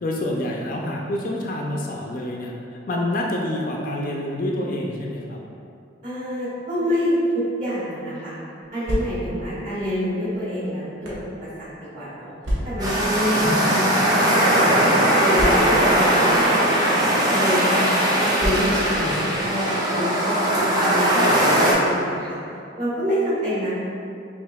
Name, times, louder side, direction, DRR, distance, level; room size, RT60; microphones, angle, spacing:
voice 1, 0.0-5.4 13.3-14.1 19.0-19.4, left 1 dB, 45° left, -1 dB, 0.3 m, -28 dB
voice 2, 6.0-8.4 8.7-11.1 11.6-11.7 11.9-12.3 12.6-16.7 17.0-17.9 18.2-22.4 22.8-23.7, equal, 40° right, -11 dB, 1.4 m, -27 dB
sound 1, 8.6-9.5 10.3-11.3 12.4-13.0 13.9-14.1 14.3-14.4 15.3-16.0 16.9-17.1 18.4-19.0, equal, 70° right, 0.7 m, -29 dB
sound 2, 12.8-21.7, right 1 dB, 20° right, 0.5 m, -19 dB
5.3 x 2.5 x 2.2 m, 2.5 s
head